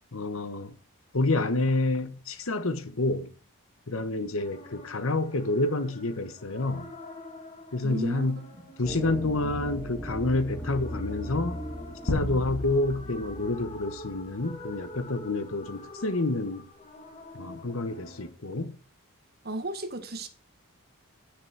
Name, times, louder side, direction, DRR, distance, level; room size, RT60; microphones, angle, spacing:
voice 1, 0.1-0.7 1.1-3.3 3.9-6.9 7.7-8.4 8.8-11.6 12.0-16.6 17.3-18.7, left 2 dB, 65° left, 1.1 m, -28 dB
sound 1, 4.3-18.3, left 2 dB, 30° left, 2.0 m, -47 dB
voice 2, 7.8-8.2 19.4-20.3, right 1 dB, 45° right, 1.5 m, -33 dB
sound 2, 8.8-14.0, equal, 5° left, 3.3 m, -38 dB
sound 3, 12.1-14.9, left 1 dB, 90° left, 2.0 m, -35 dB
9.8 x 6.7 x 6.1 m
head